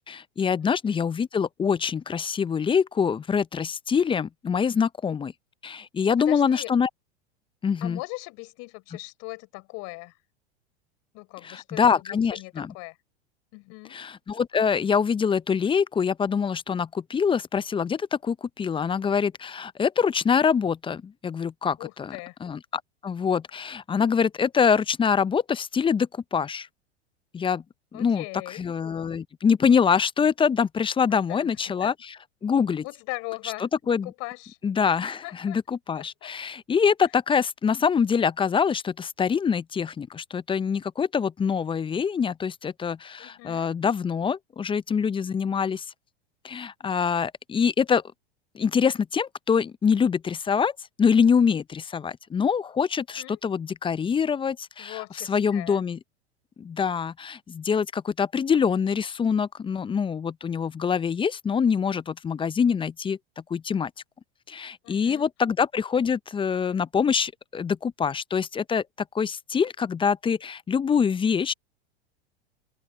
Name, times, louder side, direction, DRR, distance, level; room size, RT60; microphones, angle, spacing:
voice 1, 0.1-5.3 5.6-6.9 7.6-8.0 11.4-12.7 13.9-26.7 27.3-27.6 27.9-32.1 32.4-32.8 33.6-34.1 34.6-45.8 46.4-48.0 48.5-50.7 51.0-56.0 56.6-63.2 63.5-63.9 64.5-68.8 69.1-71.5, left 6 dB, 15° left, 0.7 m, -25 dB
voice 2, 0.6-1.1 6.2-6.7 7.8-10.1 11.1-13.0 13.5-14.0 21.8-22.4 27.9-28.7 31.3-31.5 31.8-31.9 32.8-33.6 34.0-34.6 35.1-35.6 36.0-36.3 43.2-43.7 53.2-53.4 54.8-55.8 64.8-65.3, left 28 dB, 50° left, 4.5 m, -39 dB
open air
hypercardioid pair, 95°, 33 cm